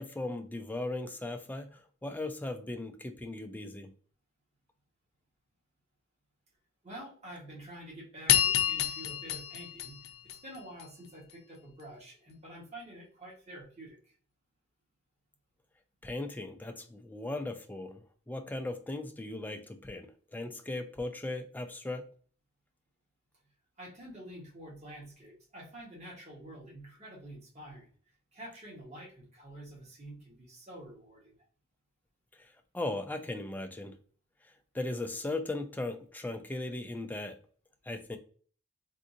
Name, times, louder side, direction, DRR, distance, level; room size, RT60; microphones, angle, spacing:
voice 1, 0.0-3.9 16.0-22.0 32.4-33.9 34.7-37.4 37.9-38.2, left 2 dB, 10° left, 0.3 m, -38 dB
voice 2, 6.8-14.2 23.8-27.9 28.3-31.4, right 1 dB, 30° right, 1.3 m, -48 dB
sound 1, 8.3-10.8, left 11 dB, 85° left, 0.5 m, -29 dB
3.5 x 2.6 x 2.6 m
head